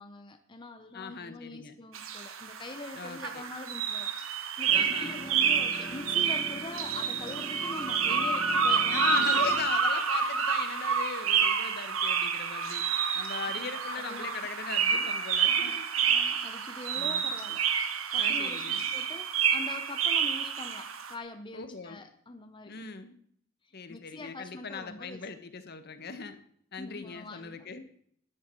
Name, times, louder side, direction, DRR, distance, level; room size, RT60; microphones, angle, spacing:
voice 1, 0.0-9.6 12.9-13.1 13.5-14.3 16.0-22.8 23.6-25.3 26.8-27.9, left 2 dB, 25° left, 6 dB, 0.9 m, -44 dB
voice 2, 0.9-1.8 3.0-3.4 4.7-5.2 8.9-12.8 13.1-15.9 16.9-17.3 18.2-18.9 21.5-22.0 22.6-23.1 23.7-26.4 26.7-27.8, left 5 dB, 50° left, 9 dB, 1.3 m, -39 dB
sound 1, 1.9-21.1, right 6 dB, 85° right, 1.4 m, -29 dB
sound 2, 4.7-9.7, equal, 5° left, 1.3 m, -44 dB
14.0 x 10.5 x 4.7 m, 0.64 s
head